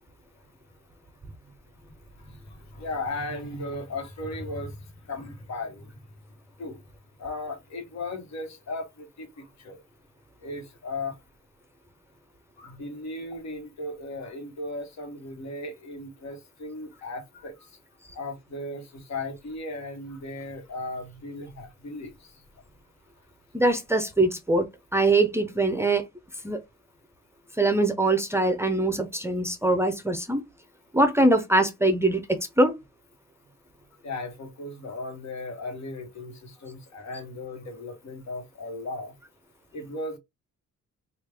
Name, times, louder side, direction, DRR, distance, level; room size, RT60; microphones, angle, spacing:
voice 1, 2.2-4.8 5.1-5.9 6.6-6.8 7.2-9.8 10.4-11.1 12.6-17.6 18.1-22.3 34.0-39.1 39.7-40.2, left 2 dB, 65° left, 1.3 m, -36 dB
voice 2, 23.5-24.7 24.9-26.1 26.4-26.6 27.6-30.4 30.9-32.7, right 2 dB, 10° right, 0.6 m, -22 dB
3.1 x 2.5 x 3.4 m
cardioid pair, 90°, 30 cm